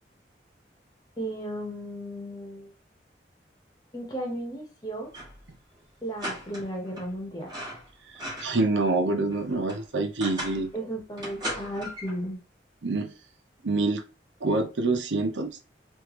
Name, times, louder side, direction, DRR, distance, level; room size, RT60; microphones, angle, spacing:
voice 1, 1.2-2.7 3.9-5.1 6.0-7.5 10.7-12.4, right 1 dB, 20° left, 0 dB, 1.2 m, -35 dB
sound 1, 5.1-5.5 5.7-5.8 6.2-7.1 7.4-8.7 9.1-10.7 11.2-12.2, equal, 25° right, 1.6 m, -38 dB
voice 2, 8.1-10.7 12.8-13.1 13.6-14.0 14.4-15.6, right 2 dB, 85° right, 7 dB, 0.7 m, -26 dB
3.4 x 3.1 x 3.1 m, 0.30 s
head